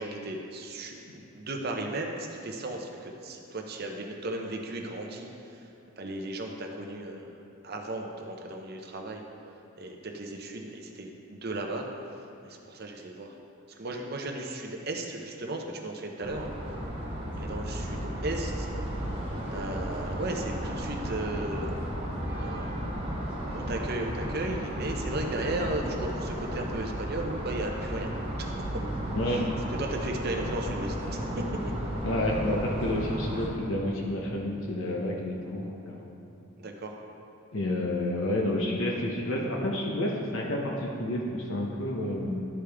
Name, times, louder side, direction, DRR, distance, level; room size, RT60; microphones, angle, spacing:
voice 1, 0.0-5.7 6.0-7.3 7.6-9.2 9.8-11.8 12.4-13.3 13.8-16.5 17.4-18.7 19.5-21.7 22.4-22.8 23.5-28.1 28.4-28.5 29.3-29.4 29.8-31.7 36.6-36.9, right 2 dB, 45° right, 2 dB, 0.7 m, -35 dB
sound 1, 16.2-33.5, equal, 25° right, 1.4 m, -34 dB
voice 2, 32.0-36.1 37.5-42.4, left 1 dB, 65° left, -2 dB, 0.8 m, -30 dB
12.0 x 4.9 x 3.4 m, 2.7 s
head